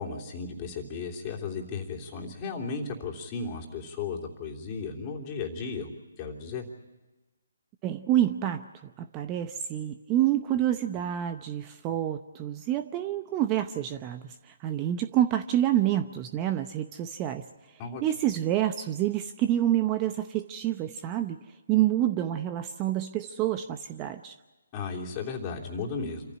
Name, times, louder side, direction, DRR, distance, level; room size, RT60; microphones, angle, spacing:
voice 1, 0.0-5.9 6.2-6.6 17.8-18.0 24.7-26.4, left 4 dB, 25° left, 0 dB, 3.3 m, -35 dB
voice 2, 7.8-8.6 9.0-17.4 18.0-21.4 21.7-24.3, right 12 dB, 20° right, 9 dB, 0.8 m, -27 dB
27.0 x 15.0 x 9.7 m, 1.2 s
figure-of-eight pair, 145°, 0 cm